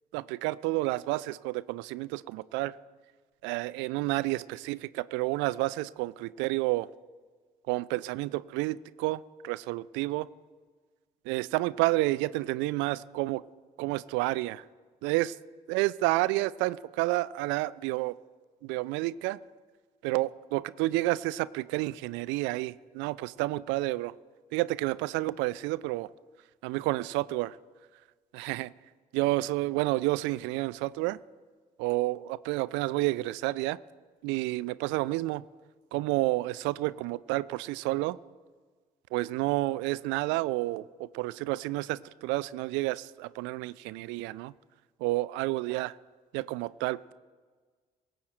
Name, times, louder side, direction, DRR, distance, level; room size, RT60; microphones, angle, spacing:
voice 1, 0.1-2.8 3.4-6.9 7.7-10.3 11.3-13.4 13.8-14.6 15.0-15.3 15.7-18.2 18.6-19.4 20.0-24.1 24.5-26.1 26.6-27.6 28.3-28.7 29.1-31.2 31.8-33.8 34.2-35.4 35.9-38.2 39.1-44.5 45.0-45.9 46.3-47.1, right 19 dB, 65° right, 19 dB, 0.4 m, -30 dB
23.0 x 7.8 x 4.4 m, 1.5 s
figure-of-eight pair, 45°, 20 cm